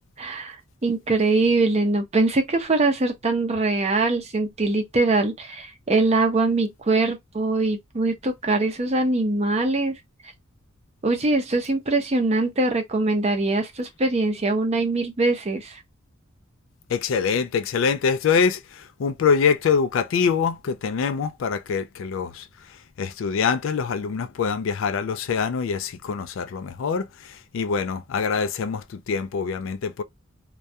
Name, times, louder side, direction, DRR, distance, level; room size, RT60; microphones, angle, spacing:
voice 1, 0.2-0.6 0.8-10.0 11.0-15.8, right 2 dB, 35° right, 0.6 m, -22 dB
voice 2, 16.9-22.5 23.0-30.0, left 6 dB, 70° left, 0.3 m, -24 dB
2.3 x 2.1 x 2.7 m
head